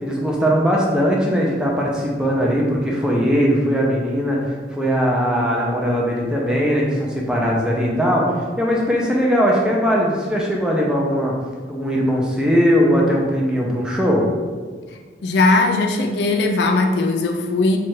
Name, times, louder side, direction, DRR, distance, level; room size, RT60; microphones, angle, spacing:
voice 1, 0.0-11.3 11.7-14.3, equal, 5° right, -3 dB, 0.5 m, -19 dB
voice 2, 15.2-17.8, left 3 dB, 70° left, 4 dB, 0.4 m, -18 dB
3.1 x 2.4 x 4.3 m, 1.5 s
head